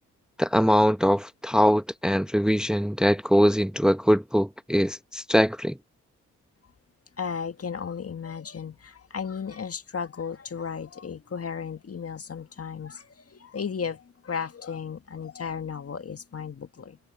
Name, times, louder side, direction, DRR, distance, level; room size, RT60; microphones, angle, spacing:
voice 1, 0.4-5.8, equal, ahead, 1.1 m, -22 dB
voice 2, 7.2-17.0, left 6 dB, 45° left, 1.9 m, -35 dB
hypercardioid pair, 45°, 33 cm